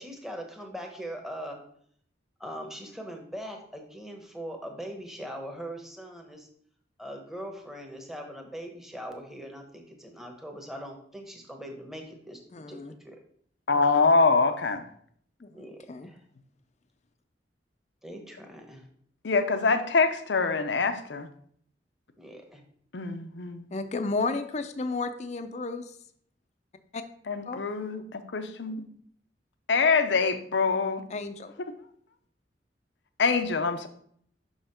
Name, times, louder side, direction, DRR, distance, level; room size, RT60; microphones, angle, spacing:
voice 1, 0.0-1.6 2.4-6.5 7.0-13.2 15.5-16.2 18.0-18.9 22.2-22.6, equal, ahead, 2 dB, 0.9 m, -41 dB
voice 2, 12.5-12.9 15.4-16.1 23.7-25.9 26.9-27.0 27.5-27.6 31.1-31.5, left 3 dB, 40° left, 9 dB, 0.5 m, -32 dB
voice 3, 13.7-14.9 19.2-21.3 22.9-23.7 27.3-28.9 29.7-31.0 33.2-33.9, left 4 dB, 85° left, 9 dB, 0.7 m, -25 dB
5.9 x 5.6 x 4.3 m, 0.63 s
head